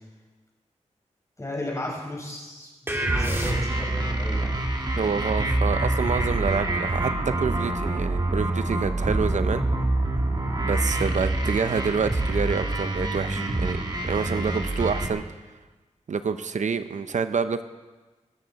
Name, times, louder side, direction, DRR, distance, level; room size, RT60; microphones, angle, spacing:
voice 1, 1.4-4.5, left 1 dB, 25° left, -2 dB, 5.1 m, -34 dB
sound 1, 2.9-4.0, right 1 dB, 20° right, 2.0 m, -28 dB
sound 2, 3.1-15.1, right 2 dB, 35° right, 1.9 m, -26 dB
voice 2, 5.0-9.6 10.6-15.2 16.1-17.6, right 5 dB, 75° right, 10 dB, 0.7 m, -27 dB
24.0 x 13.0 x 4.1 m, 1.2 s
wide cardioid pair, 110°, 13 cm